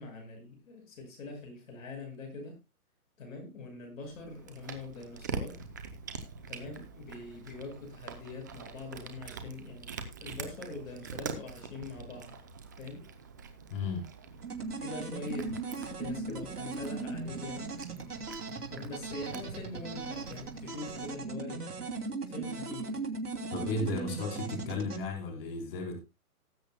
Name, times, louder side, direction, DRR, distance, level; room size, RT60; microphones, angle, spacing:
voice 1, 0.0-2.6 3.2-5.6 6.5-9.9 10.2-12.4 12.8-13.1 14.8-17.7 18.7-21.7 22.3-23.0, left 3 dB, 60° left, 6.1 m, -43 dB
Cat, 4.0-21.1, right 5 dB, 15° right, 0.5 m, -45 dB
voice 2, 13.7-14.1 23.5-26.0, left 3 dB, 40° left, 3.9 m, -34 dB
sound 1, 14.4-25.0, right 4 dB, 80° right, 2.8 m, -38 dB
18.5 x 8.3 x 2.2 m
hypercardioid pair, 150°, 45 cm